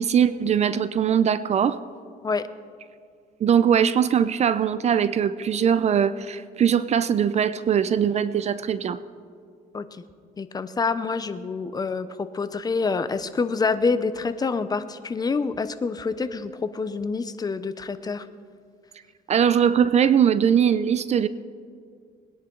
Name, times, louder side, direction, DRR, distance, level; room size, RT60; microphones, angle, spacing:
voice 1, 0.0-1.8 3.4-9.0 19.3-21.3, right 8 dB, 40° right, 15 dB, 0.5 m, -21 dB
voice 2, 10.4-18.3, left 4 dB, 25° left, 12 dB, 0.7 m, -27 dB
20.5 x 10.5 x 3.9 m, 2.3 s
cardioid pair, 110°, 17 cm